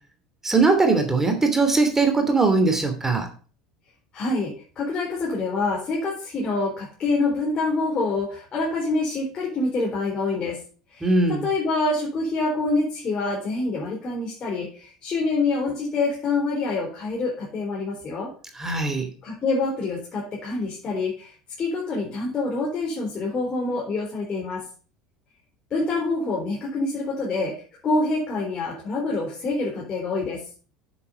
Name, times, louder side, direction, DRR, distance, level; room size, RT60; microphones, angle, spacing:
voice 1, 0.4-3.3 11.0-11.5 18.5-19.1, right 3 dB, 15° right, 5 dB, 2.9 m, -20 dB
voice 2, 4.1-10.6 10.9-18.3 19.2-24.6 25.7-30.4, left 3 dB, 40° left, -3 dB, 4.2 m, -26 dB
9.5 x 7.5 x 5.3 m, 0.40 s
hypercardioid pair, 75°, 3 cm